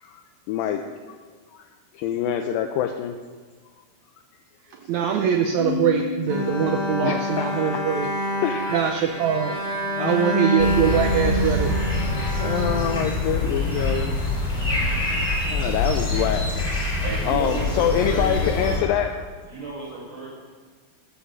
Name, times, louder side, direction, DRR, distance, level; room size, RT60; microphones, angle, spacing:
voice 1, 0.5-0.8 1.5-1.6 1.9-3.2 7.0-7.8 8.4-8.9 9.9-10.6 12.4-14.6 14.9-15.0 15.5-16.9 17.3-19.1, left 10 dB, 80° left, 6 dB, 2.2 m, -26 dB
voice 2, 4.9-8.1 8.7-9.5 10.0-11.7, right 8 dB, 85° right, 4 dB, 1.6 m, -23 dB
Piano, 5.6-9.0, left 6 dB, 50° left, 0.5 m, -34 dB
Bowed string instrument, 6.3-13.6, equal, 30° right, 0.7 m, -27 dB
sound 1, 10.6-18.8, left 1 dB, 15° left, 2.7 m, -25 dB
voice 3, 17.0-18.8 19.5-20.3, right 2 dB, 45° right, -6 dB, 5.1 m, -32 dB
12.5 x 7.0 x 6.6 m, 1.6 s
omnidirectional pair, 4.1 m